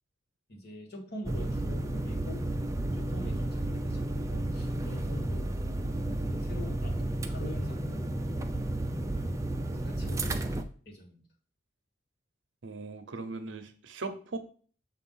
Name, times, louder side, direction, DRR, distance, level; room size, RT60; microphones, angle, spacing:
voice 1, 0.5-2.5 2.9-5.6 6.1-7.0 7.3-8.1 9.7-10.4 10.8-11.2, left 1 dB, 60° left, 1 dB, 1.4 m, -44 dB
sound 1, 1.2-10.6, right 1 dB, 15° right, 0.4 m, -32 dB
voice 2, 12.6-14.4, right 3 dB, 80° right, 8 dB, 0.7 m, -39 dB
6.9 x 2.5 x 5.4 m, 0.43 s
head